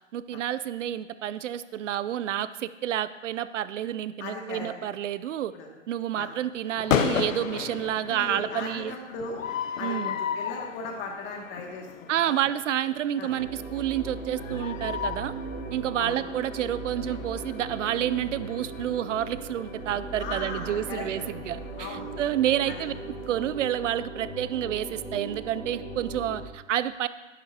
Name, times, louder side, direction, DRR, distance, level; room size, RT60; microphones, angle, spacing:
voice 1, 0.1-5.5 5.9-9.0 9.8-10.1 12.1-15.3 15.7-22.9 23.3-27.1, right 11 dB, 70° right, 15 dB, 0.5 m, -29 dB
voice 2, 4.2-4.7 5.5-5.7 6.1-6.3 8.1-9.4 9.8-12.4 13.2-13.3 16.0-16.2 20.2-21.3 21.8-22.1 22.7-22.8, left 3 dB, 30° left, 0 dB, 2.2 m, -37 dB
sound 1, 6.7-23.4, left 8 dB, 85° left, 0.7 m, -35 dB
sound 2, 13.3-26.4, right 3 dB, 30° right, 2.3 m, -38 dB
11.5 x 11.0 x 2.8 m, 1.2 s
hypercardioid pair, 120°, 38 cm